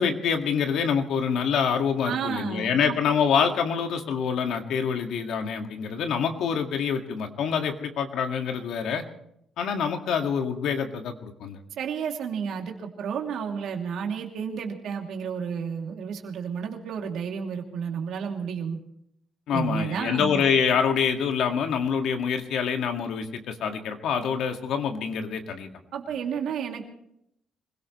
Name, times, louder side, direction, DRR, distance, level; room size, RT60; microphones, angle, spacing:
voice 1, 0.0-9.0 9.6-11.6 19.5-25.7, left 7 dB, 75° left, 5 dB, 2.0 m, -26 dB
voice 2, 2.0-3.0 11.7-18.8 19.5-20.4 25.9-26.9, right 7 dB, 75° right, 2 dB, 2.8 m, -31 dB
25.5 x 17.0 x 3.2 m, 0.75 s
cardioid pair, 100°, 0 cm